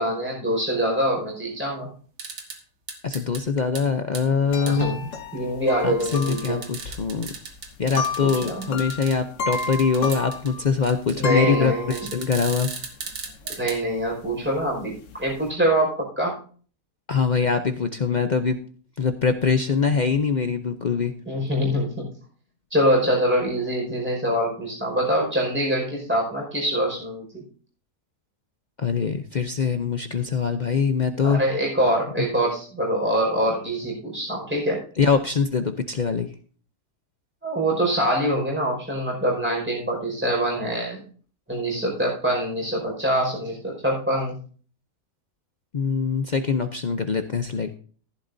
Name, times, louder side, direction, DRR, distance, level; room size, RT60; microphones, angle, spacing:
voice 1, 0.0-1.9 4.6-6.6 8.2-8.6 11.1-12.1 13.4-16.4 21.3-22.1 22.7-27.4 31.2-34.8 37.4-41.0 41.5-44.3, equal, 5° right, -2 dB, 5.1 m, -24 dB
sound 1, 2.2-2.6 2.9-3.4 3.7-3.8 4.1-4.2 4.7-4.8 6.0-9.2 9.5-10.5 10.8-11.1 11.9-13.8, right 5 dB, 80° right, 2.2 m, -36 dB
voice 2, 3.0-4.9 5.8-7.3 7.8-12.7 17.1-18.6 19.0-21.1 28.8-31.4 32.2-32.3 35.0-36.3 45.7-47.7, left 5 dB, 75° left, 7 dB, 0.4 m, -23 dB
sound 2, 4.5-12.4 12.8-12.9 13.1-13.8 14.0-15.5, left 4 dB, 55° left, 1.1 m, -32 dB
14.5 x 11.5 x 2.7 m, 0.42 s
omnidirectional pair, 1.8 m